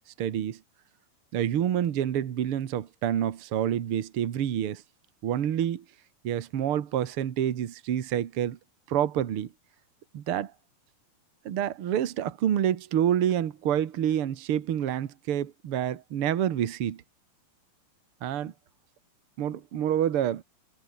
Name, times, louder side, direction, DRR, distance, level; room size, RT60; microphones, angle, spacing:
voice 1, 0.2-0.6 1.3-4.8 5.2-5.8 6.2-8.6 8.9-9.5 10.1-10.5 11.4-17.0 18.2-18.5 19.4-20.4, right 10 dB, 85° right, 1.2 m, -27 dB
omnidirectional pair, 4.8 m